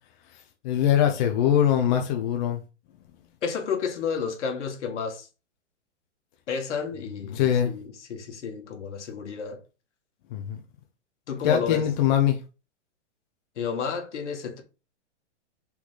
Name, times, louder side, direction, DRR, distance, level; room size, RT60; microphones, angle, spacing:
voice 1, 0.3-2.6 7.0-7.8 10.3-10.6 11.4-12.4, left 10 dB, 40° left, 0.8 m, -23 dB
voice 2, 3.4-5.3 6.5-9.6 11.3-11.9 13.6-14.6, left 6 dB, 75° left, 2.1 m, -31 dB
5.7 x 4.1 x 4.0 m
hypercardioid pair, 150°, 36 cm